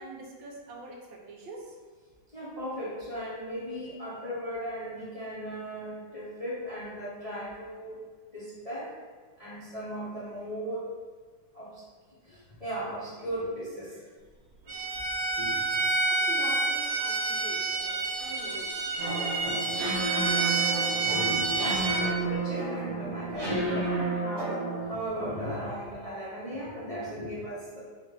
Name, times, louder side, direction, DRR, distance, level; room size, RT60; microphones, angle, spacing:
voice 1, 0.0-1.8 15.5-15.7 16.1-18.7 19.1-21.0, right 2 dB, 80° right, -1 dB, 1.4 m, -44 dB
voice 2, 2.3-8.0 8.3-8.9 9.4-10.9 11.5-11.8 12.2-14.0 15.3-15.6 19.1-19.2 19.5-20.0 21.0-27.8, equal, 35° left, -9 dB, 0.5 m, -37 dB
Bowed string instrument, 14.7-22.1, right 3 dB, 55° right, 1.5 m, -28 dB
sound 1, 19.0-25.1, right 3 dB, 20° right, 0.7 m, -32 dB
4.2 x 2.4 x 4.7 m, 1.5 s
omnidirectional pair, 2.1 m